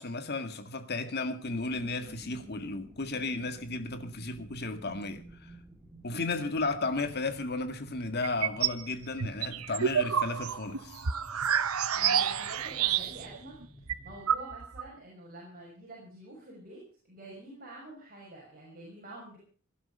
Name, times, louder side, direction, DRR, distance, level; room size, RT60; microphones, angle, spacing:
voice 1, 0.0-5.5 6.0-11.0, left 3 dB, 50° left, 2.0 m, -34 dB
sound 1, 1.4-14.2, equal, 5° right, 1.7 m, -53 dB
sound 2, 8.2-8.8 9.2-13.4 13.6-13.7 13.9-14.9, right 8 dB, 90° right, 0.9 m, -29 dB
voice 2, 11.6-13.6 14.0-19.4, right 1 dB, 40° right, 6.2 m, -47 dB
18.5 x 11.5 x 5.5 m
head